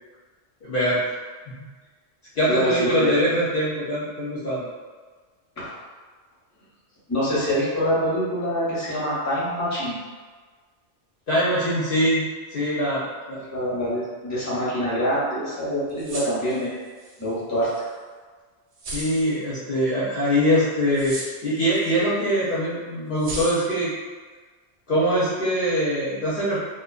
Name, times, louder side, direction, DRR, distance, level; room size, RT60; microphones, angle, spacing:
voice 1, 0.6-1.0 2.4-4.6 11.3-12.2 12.5-13.4 18.9-21.2 21.4-23.9 24.9-26.6, equal, 60° left, -10 dB, 0.7 m, -23 dB
voice 2, 2.5-3.2 5.6-5.7 7.1-10.0 13.4-16.8 17.2-17.7, equal, 15° left, -9 dB, 0.7 m, -25 dB
sound 1, 15.9-17.3 17.7-17.8 18.8-19.4 20.9-21.9 22.2-22.3 23.2-23.8, right 1 dB, 75° right, 0.9 m, -35 dB
2.5 x 2.2 x 2.3 m, 1.4 s
omnidirectional pair, 1.2 m